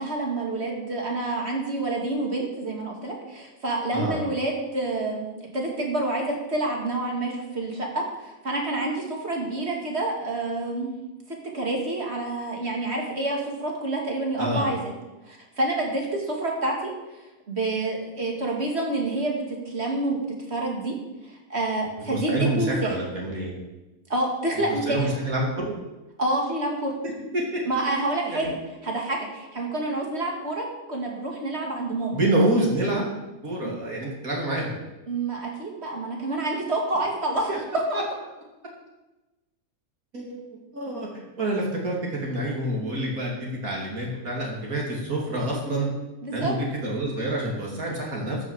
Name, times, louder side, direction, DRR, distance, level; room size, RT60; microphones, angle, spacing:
voice 1, 0.0-5.3 5.5-10.9 11.3-14.8 15.3-20.2 20.5-21.0 21.2-23.0 24.1-25.1 26.2-27.0 27.7-28.6 28.8-32.2 35.1-38.0 46.2-46.5, right 2 dB, 40° right, 0 dB, 2.8 m, -28 dB
voice 2, 22.1-23.6 24.9-25.7 27.3-27.6 28.2-28.5 32.1-33.1 33.4-34.8 37.5-37.6 37.9-38.0 40.1-45.9 46.3-48.4, right 1 dB, 60° right, -3 dB, 3.1 m, -27 dB
13.5 x 6.3 x 7.2 m, 1.0 s
omnidirectional pair, 1.7 m